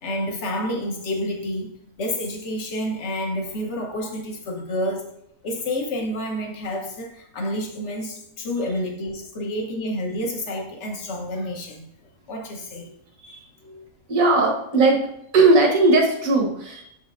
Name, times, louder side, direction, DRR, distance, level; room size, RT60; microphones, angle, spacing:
voice 1, 0.0-1.7 2.0-5.0 5.4-11.9 12.3-12.9 13.6-13.8, left 1 dB, 55° left, 2 dB, 1.3 m, -29 dB
voice 2, 14.1-15.0 15.3-16.8, right 3 dB, 75° right, 1 dB, 1.7 m, -18 dB
7.1 x 5.7 x 2.5 m, 0.78 s
omnidirectional pair, 1.4 m